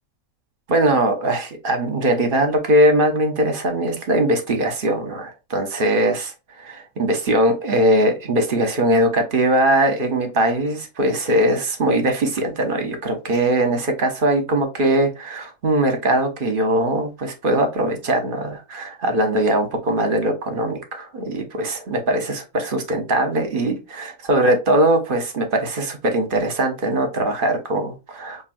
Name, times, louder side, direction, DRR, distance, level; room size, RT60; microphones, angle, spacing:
voice 1, 0.7-6.3 6.6-28.4, right 1 dB, 45° right, 0.9 m, -21 dB
6.0 x 2.6 x 2.5 m
omnidirectional pair, 1.5 m